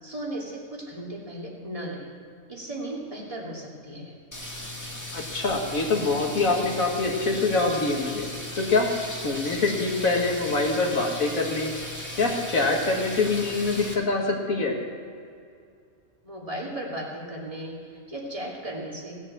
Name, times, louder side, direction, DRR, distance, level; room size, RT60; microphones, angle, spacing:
voice 1, 0.0-2.1 2.5-4.1 16.2-19.2, right 1 dB, 25° right, -3 dB, 2.7 m, -36 dB
sound 1, 4.3-13.9, left 1 dB, 15° left, 1.7 m, -37 dB
voice 2, 5.1-8.3 8.5-11.7 12.2-14.8, left 3 dB, 75° left, 0 dB, 2.3 m, -25 dB
17.0 x 7.4 x 8.0 m, 2.3 s
omnidirectional pair, 1.4 m